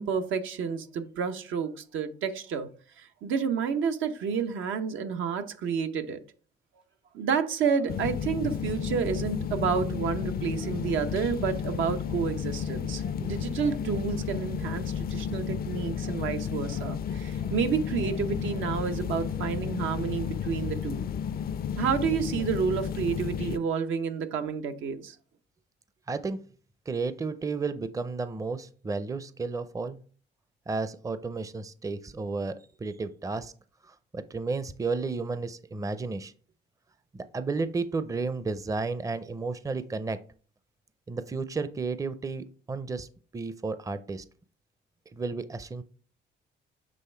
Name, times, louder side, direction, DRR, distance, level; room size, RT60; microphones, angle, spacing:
voice 1, 0.0-2.7 3.0-6.2 7.1-21.1 21.8-25.2, right 6 dB, 80° right, 0.8 m, -30 dB
sound 1, 7.9-23.6, left 8 dB, 50° left, 0.4 m, -32 dB
voice 2, 26.1-26.5 26.9-30.0 30.7-33.5 33.8-36.3 37.1-40.2 41.1-43.1 43.3-44.2 45.1-45.8, right 4 dB, 15° right, 0.5 m, -32 dB
7.6 x 3.3 x 4.4 m
cardioid pair, 90°, 20 cm